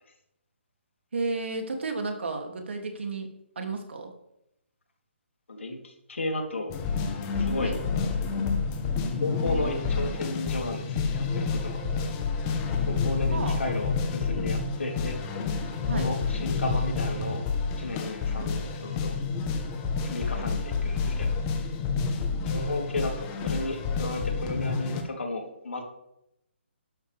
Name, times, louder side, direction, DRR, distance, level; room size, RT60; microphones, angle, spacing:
voice 1, 1.1-3.3 3.5-4.1 7.6-7.7 13.3-13.6 15.9-16.1, right 3 dB, 70° right, 3 dB, 3.0 m, -32 dB
voice 2, 5.5-6.8 7.3-7.7 9.2-12.1 12.9-15.2 15.9-17.4 17.8-19.2 20.0-21.3 22.4-25.8, left 2 dB, 85° left, 1 dB, 3.7 m, -34 dB
sound 1, 6.7-25.0, left 4 dB, 20° left, 1.2 m, -29 dB
13.0 x 11.5 x 3.6 m, 0.82 s
hypercardioid pair, 165°, 6 cm